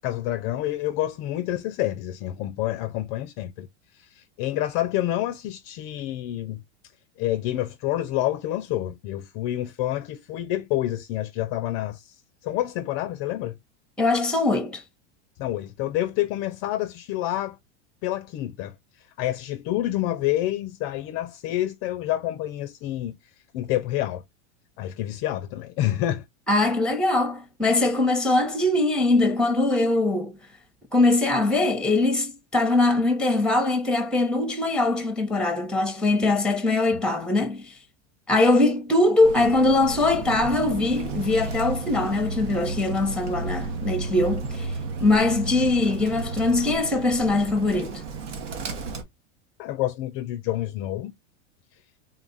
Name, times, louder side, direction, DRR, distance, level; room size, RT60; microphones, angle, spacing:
voice 1, 0.0-3.7 3.9-6.6 7.2-13.6 15.4-17.6 18.0-23.2 23.5-24.2 24.8-26.2 36.9-37.0 49.6-51.1, left 14 dB, 40° left, 0.4 m, -28 dB
voice 2, 14.0-14.8 26.5-30.4 30.9-37.7 38.3-44.7 45.0-48.0, left 2 dB, ahead, 0.8 m, -22 dB
Bird, 39.2-49.0, right 3 dB, 80° right, 1.3 m, -33 dB
3.8 x 2.3 x 4.0 m
supercardioid pair, 125°, 36 cm